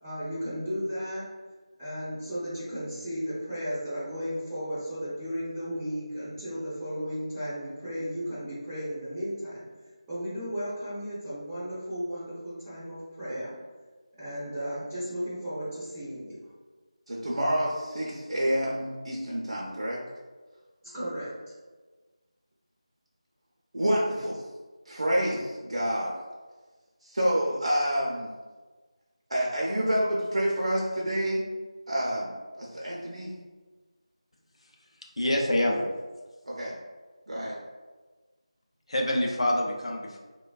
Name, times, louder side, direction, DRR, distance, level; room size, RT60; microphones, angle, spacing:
voice 1, 0.0-1.3 1.8-9.6 10.1-13.5 14.2-16.4 20.9-21.5, equal, 5° right, -14 dB, 0.4 m, -34 dB
voice 2, 17.1-20.0 23.7-24.4 24.9-26.1 27.0-28.3 29.3-31.4 31.9-32.3 32.6-33.3 36.4-36.7 37.3-37.6, equal, 70° right, -4 dB, 0.5 m, -28 dB
voice 3, 35.2-35.8 38.9-40.2, left 1 dB, 65° left, 0 dB, 0.5 m, -26 dB
3.2 x 2.2 x 2.2 m, 1.3 s
figure-of-eight pair, 175°, 3 cm